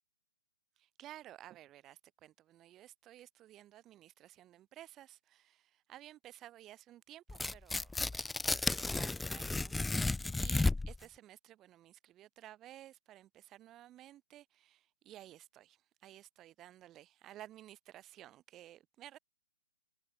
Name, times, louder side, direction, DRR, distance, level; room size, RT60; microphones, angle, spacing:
voice 1, 0.8-19.2, right 13 dB, 15° right, 6.6 m, -55 dB
Tearing, 7.3-11.0, left 3 dB, 5° left, 0.3 m, -33 dB
hypercardioid pair, 170°, 0 cm